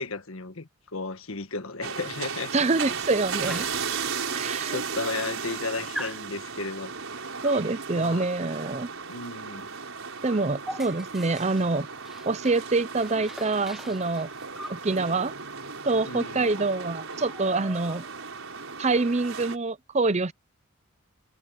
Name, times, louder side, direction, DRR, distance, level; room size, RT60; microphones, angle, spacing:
voice 1, 0.0-2.5 4.7-6.9 7.9-8.3 9.1-9.7 16.0-16.5, left 3 dB, 75° left, 1.6 m, -34 dB
sound 1, 1.8-19.6, right 5 dB, 70° right, 4.7 m, -36 dB
voice 2, 2.5-3.7 4.3-4.8 7.4-8.9 10.2-11.9 12.3-14.3 14.7-15.3 15.8-18.0 18.8-20.3, right 3 dB, 30° right, 0.6 m, -26 dB
Dog, 3.5-3.9 4.7-4.8 5.1-5.6 5.9-6.2 7.4-7.7 9.5-9.7 10.0-12.7 13.0-14.8 16.1-16.2 16.5-16.7 17.0-18.3, equal, ahead, 1.1 m, -42 dB
head